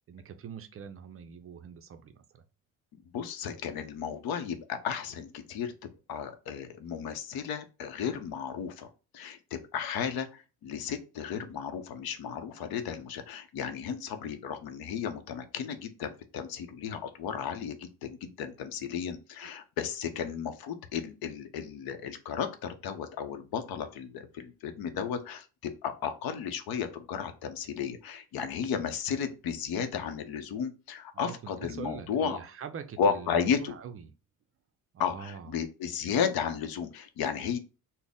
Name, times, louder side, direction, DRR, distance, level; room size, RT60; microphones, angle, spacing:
voice 1, 0.1-2.4 19.4-19.5 31.1-34.1 34.9-35.5, right 7 dB, 35° right, 8 dB, 0.4 m, -43 dB
voice 2, 3.1-8.9 9.1-32.4 33.0-33.7 35.0-37.6, left 7 dB, 70° left, 8 dB, 0.7 m, -34 dB
4.0 x 2.1 x 3.4 m, 0.32 s
cardioid pair, 110°, 38 cm